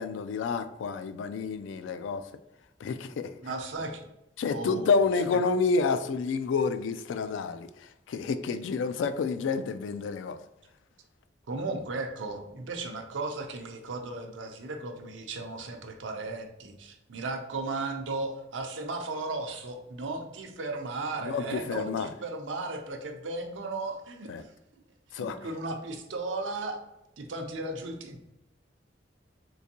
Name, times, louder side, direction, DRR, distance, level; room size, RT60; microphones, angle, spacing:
voice 1, 0.0-2.2 2.8-3.3 4.4-10.4 21.2-22.1 24.3-24.4 25.1-25.4, left 4 dB, 85° left, 0.3 m, -29 dB
voice 2, 3.4-4.0 4.5-5.0 5.3-5.4 11.5-24.5 25.1-26.8 27.2-28.2, right 3 dB, 85° right, 0.6 m, -35 dB
3.8 x 2.6 x 2.7 m
head